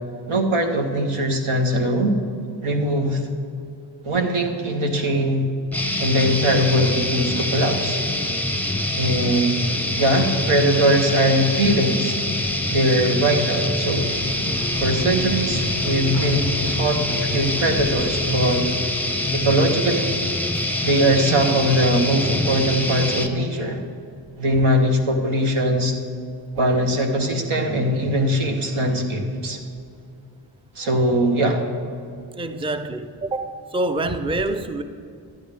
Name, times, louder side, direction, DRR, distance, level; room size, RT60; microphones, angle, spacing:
voice 1, 0.3-2.2 2.6-3.2 4.0-5.5 6.0-8.0 8.9-9.6 10.0-12.1 12.7-14.1 14.8-18.6 19.3-20.2 20.8-23.8 24.4-25.9 26.6-29.6 30.8-31.6, right 1 dB, 90° right, 4 dB, 1.2 m, -21 dB
sound 1, 5.7-23.3, left 1 dB, 5° left, 0.9 m, -25 dB
sound 2, 13.7-18.8, equal, 35° right, 1.6 m, -34 dB
voice 2, 32.4-34.8, right 2 dB, 10° right, 9 dB, 0.5 m, -26 dB
11.5 x 10.5 x 3.4 m, 2.5 s
cardioid pair, 45°, 48 cm